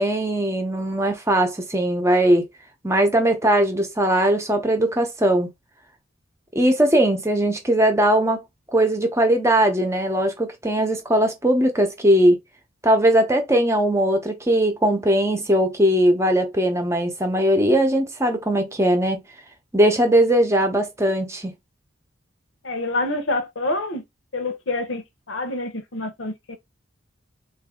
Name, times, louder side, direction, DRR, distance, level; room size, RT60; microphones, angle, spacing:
voice 1, 0.0-2.4 2.8-5.5 6.5-8.4 8.7-12.4 12.8-19.2 19.7-21.5, right 1 dB, 15° right, 0.8 m, -19 dB
voice 2, 22.6-24.0 24.3-26.6, left 2 dB, 70° left, 1.0 m, -27 dB
3.9 x 2.7 x 3.7 m
head